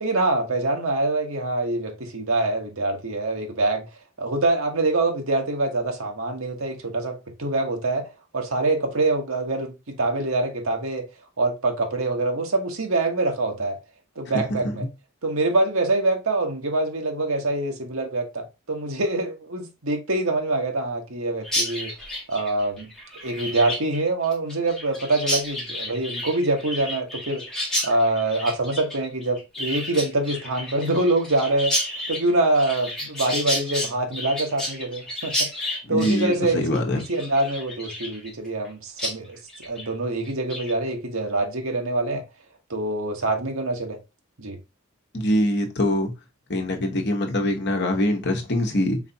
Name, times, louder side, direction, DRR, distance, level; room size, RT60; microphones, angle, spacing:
voice 1, 0.0-3.9 4.2-8.1 8.3-11.1 11.4-13.8 14.2-14.8 15.2-21.9 22.3-22.9 23.2-27.5 27.8-31.8 32.1-35.5 35.9-42.2 42.7-44.0 44.4-44.6, right 2 dB, 70° right, 1.2 m, -25 dB
voice 2, 14.5-14.9 35.8-37.0 45.1-46.1 46.5-49.0, left 1 dB, 50° left, 1.1 m, -23 dB
Chirp tweet, 21.4-38.7 39.0-39.1 39.5-39.9 40.2-40.7, left 1 dB, 5° left, 1.7 m, -31 dB
4.8 x 3.3 x 2.8 m
head